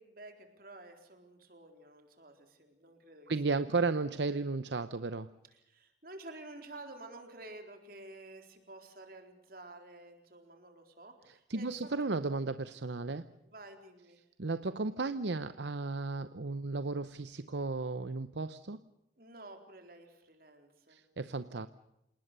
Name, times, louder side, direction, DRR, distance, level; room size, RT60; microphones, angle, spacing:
voice 1, 0.0-3.8 4.0-4.5 5.7-12.2 13.4-14.2 19.2-21.0, right 2 dB, 50° right, 5 dB, 4.1 m, -51 dB
voice 2, 3.3-5.3 11.3-13.3 14.4-18.8 20.9-21.7, right 3 dB, 70° right, 12 dB, 0.8 m, -34 dB
28.0 x 19.5 x 6.8 m, 0.87 s
head